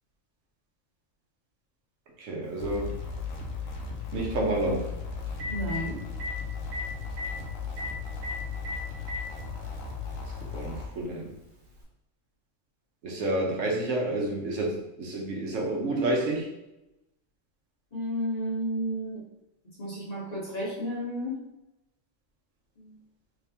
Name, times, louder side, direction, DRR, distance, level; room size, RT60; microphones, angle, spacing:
voice 1, 2.2-3.0 4.1-5.0 10.5-11.3 13.0-16.5, right 1 dB, 75° right, -1 dB, 1.2 m, -29 dB
sound 1, 2.6-10.9, left 5 dB, 85° left, 1.1 m, -36 dB
Telephone, 2.6-2.7 4.8-4.9 5.3-5.8 6.2-6.3 6.7-6.8 7.1-7.3 7.8-7.9 8.2-8.3 8.6-9.2 10.2-10.3 11.8-11.9, left 3 dB, 60° right, 1.5 m, -34 dB
voice 2, 5.5-6.0 17.9-19.2 19.8-21.4 22.8-23.0, equal, 35° left, -6 dB, 1.1 m, -32 dB
3.4 x 3.3 x 2.8 m, 0.93 s
omnidirectional pair, 1.3 m